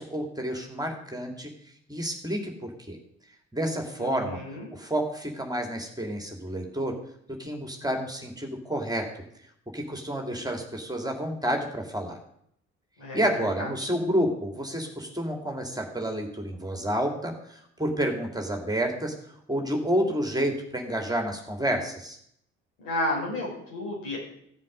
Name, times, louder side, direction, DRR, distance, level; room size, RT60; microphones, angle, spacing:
voice 1, 0.0-1.5 1.9-3.0 3.5-4.4 4.7-6.9 7.4-9.2 9.7-12.2 13.1-19.1 19.5-22.2, equal, 10° right, 2 dB, 2.8 m, -29 dB
voice 2, 4.0-4.7 13.0-13.2 13.6-13.7 22.8-24.2, left 1 dB, 70° left, -4 dB, 6.0 m, -32 dB
15.5 x 7.5 x 5.3 m, 0.71 s
figure-of-eight pair, 45°, 37 cm